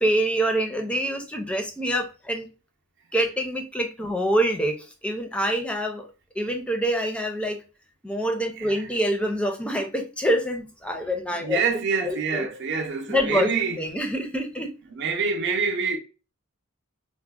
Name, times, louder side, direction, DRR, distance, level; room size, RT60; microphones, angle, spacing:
voice 1, 0.0-2.5 3.1-6.1 6.4-7.6 8.0-11.6 12.0-12.5 13.1-13.5 13.8-14.7, equal, 5° left, 0.4 m, -26 dB
voice 2, 8.6-8.9 11.4-13.8 14.9-16.0, right 5 dB, 55° right, 0.6 m, -26 dB
4.8 x 2.0 x 2.3 m
head